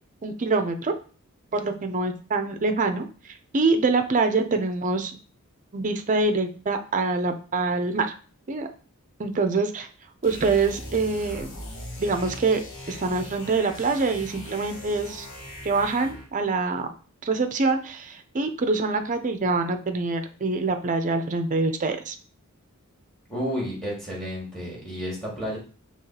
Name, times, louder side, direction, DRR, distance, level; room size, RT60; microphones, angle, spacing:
voice 1, 0.2-0.9 1.5-3.1 3.5-5.2 5.7-8.1 8.5-8.7 9.2-9.9 10.2-11.5 12.0-15.3 15.6-16.9 17.2-22.2, right 3 dB, 35° right, 7 dB, 0.5 m, -25 dB
sound 1, 10.2-16.4, left 1 dB, 60° left, 1.4 m, -40 dB
voice 2, 23.3-25.6, equal, ahead, -4 dB, 1.8 m, -31 dB
5.6 x 3.0 x 2.8 m, 0.38 s
head